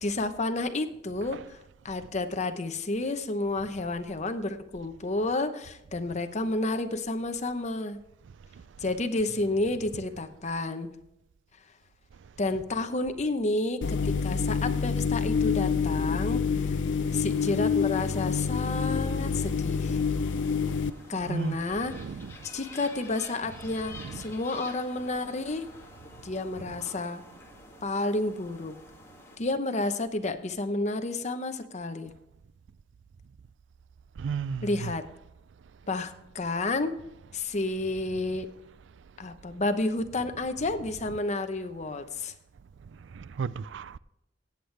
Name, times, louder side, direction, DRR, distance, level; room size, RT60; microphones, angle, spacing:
voice 1, 0.0-1.6 1.8-8.0 8.8-10.9 12.4-16.8 17.1-20.0 21.1-22.0 22.4-25.7 26.2-27.2 27.8-28.8 29.4-32.1 34.6-35.0 35.9-37.0 37.3-38.5 39.2-42.3, left 2 dB, 40° left, 0.9 m, -30 dB
sound 1, 13.8-20.9, left 5 dB, 75° left, 0.5 m, -27 dB
sound 2, 17.3-29.4, left 2 dB, 15° left, 2.2 m, -49 dB
voice 2, 21.1-21.6 21.9-22.4 23.9-24.2 34.2-34.9 41.1-41.2 43.1-44.0, right 5 dB, 75° right, 0.4 m, -34 dB
17.5 x 8.2 x 3.3 m
head